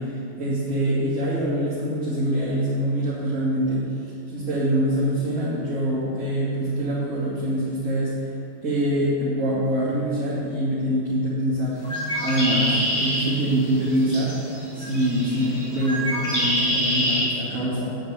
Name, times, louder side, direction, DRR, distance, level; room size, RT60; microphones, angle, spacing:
voice 1, 0.0-3.8 4.3-8.3 8.6-18.0, right 1 dB, 75° right, -11 dB, 2.9 m, -24 dB
Bird, 11.8-17.2, equal, 30° left, 3.0 m, -26 dB
9.9 x 9.2 x 4.9 m, 2.5 s
omnidirectional pair, 1.4 m